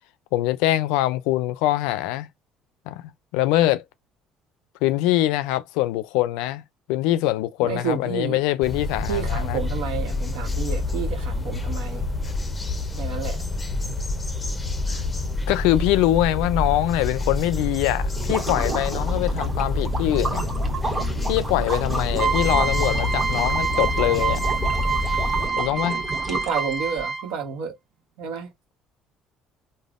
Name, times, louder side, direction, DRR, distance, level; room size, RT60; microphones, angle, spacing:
voice 1, 0.3-2.3 2.9-3.0 3.3-3.8 4.8-6.6 6.9-9.6 14.9-15.0 15.5-20.5 21.3-24.4 25.6-26.0, left 15 dB, 90° left, 0.3 m, -23 dB
voice 2, 7.6-8.4 9.1-12.0 13.0-13.4 26.3-27.7 28.2-28.5, right 6 dB, 85° right, 1.0 m, -30 dB
sound 1, 8.6-25.5, left 2 dB, 20° left, 0.6 m, -27 dB
sound 2, 18.1-27.0, right 3 dB, 25° right, 1.2 m, -32 dB
sound 3, 22.2-27.4, right 5 dB, 55° right, 0.5 m, -26 dB
3.3 x 2.1 x 2.5 m
supercardioid pair, 95°, 0 cm